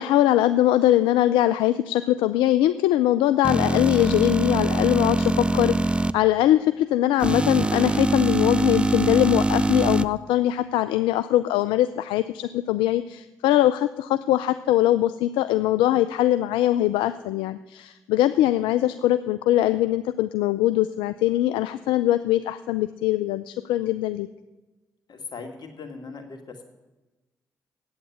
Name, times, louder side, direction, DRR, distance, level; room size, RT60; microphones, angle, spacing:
voice 1, 0.0-24.3, left 13 dB, 80° left, 12 dB, 0.4 m, -22 dB
sound 1, 3.4-6.1 7.2-10.0, right 2 dB, 15° right, 0.5 m, -23 dB
voice 2, 25.1-26.6, left 4 dB, 55° left, 5 dB, 2.1 m, -39 dB
8.8 x 8.7 x 9.2 m, 1.1 s
hypercardioid pair, 45°, 8 cm